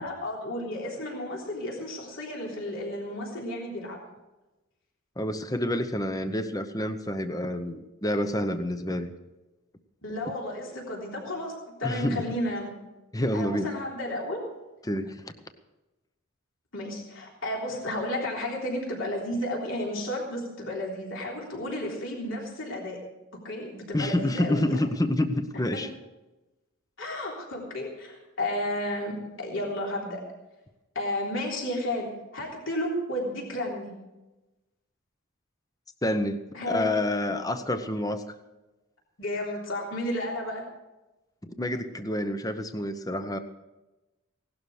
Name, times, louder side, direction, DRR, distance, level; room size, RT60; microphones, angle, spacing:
voice 1, 0.0-4.0 10.0-12.8 13.3-14.5 16.7-23.0 23.4-24.8 25.7-25.8 27.0-30.2 31.0-33.9 36.5-36.9 39.2-40.7, left 1 dB, 60° left, -2 dB, 3.6 m, -32 dB
voice 2, 5.2-9.1 11.8-12.3 13.1-13.7 14.9-15.2 23.9-25.9 36.0-36.4 36.7-38.2 41.6-43.4, left 1 dB, 15° left, 9 dB, 0.8 m, -28 dB
17.5 x 12.0 x 4.9 m, 1.0 s
head